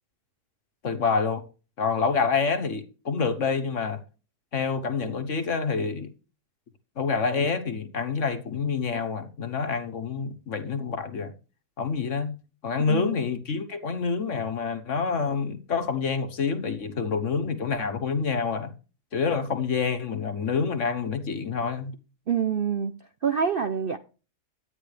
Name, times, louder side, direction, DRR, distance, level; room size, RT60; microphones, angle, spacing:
voice 1, 0.8-1.4 1.8-4.0 4.5-6.1 7.0-11.3 11.8-12.3 12.6-18.7 19.1-21.9, left 5 dB, 55° left, 1.5 m, -27 dB
voice 2, 22.3-22.9 23.2-24.0, right 7 dB, 55° right, 0.6 m, -26 dB
11.5 x 9.4 x 3.3 m
omnidirectional pair, 1.7 m